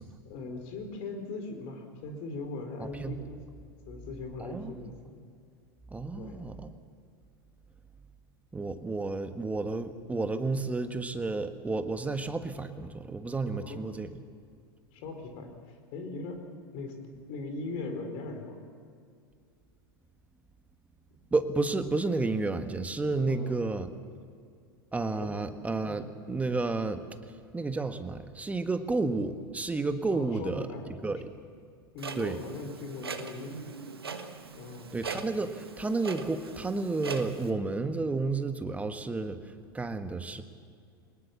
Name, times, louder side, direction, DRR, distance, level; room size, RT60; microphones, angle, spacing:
voice 1, 0.2-3.4 3.9-5.2 6.1-6.4 13.4-13.8 14.9-16.4 16.7-17.0 17.3-18.6 23.3-23.6 25.2-25.3 30.1-30.9 31.9-33.7 34.5-34.9, left 3 dB, 50° left, 6 dB, 4.4 m, -39 dB
voice 2, 4.4-4.7 5.9-6.7 8.5-14.1 21.3-23.9 24.9-30.7 31.0-31.3 32.2-32.4 34.9-40.4, right 3 dB, 10° right, 8 dB, 1.5 m, -31 dB
Clock, 32.0-37.5, right 5 dB, 85° right, 1.6 m, -41 dB
23.5 x 20.0 x 7.2 m, 2.2 s
figure-of-eight pair, 90°, 12 cm